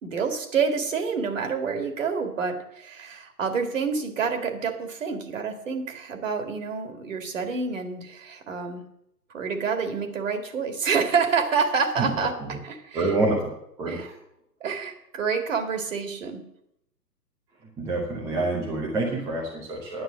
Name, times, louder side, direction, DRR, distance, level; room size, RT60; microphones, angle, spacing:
voice 1, 0.0-8.8 9.3-12.3 12.6-13.1 13.9-14.1 14.6-16.4, right 5 dB, 50° right, 6 dB, 2.2 m, -28 dB
voice 2, 12.0-12.6 12.9-13.5 13.8-14.2 17.8-20.0, right 2 dB, 5° right, -2 dB, 0.8 m, -27 dB
9.7 x 9.0 x 7.2 m, 0.78 s
figure-of-eight pair, 135°, 50 cm